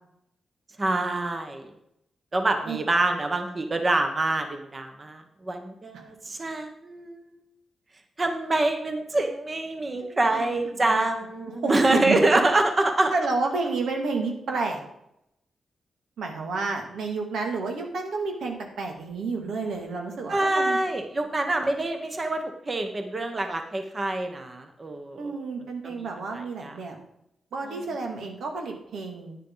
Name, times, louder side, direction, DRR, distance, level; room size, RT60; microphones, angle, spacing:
voice 1, 0.8-1.7 2.3-7.3 8.2-13.1 20.3-25.3 25.8-26.7, right 2 dB, 25° right, 5 dB, 1.0 m, -26 dB
voice 2, 10.0-10.4 10.7-11.0 11.6-12.2 13.1-14.8 16.2-20.8 25.2-27.0 27.5-29.4, right 3 dB, 85° right, 2 dB, 2.2 m, -30 dB
11.0 x 9.9 x 3.9 m, 0.80 s
wide cardioid pair, 140°, 0 cm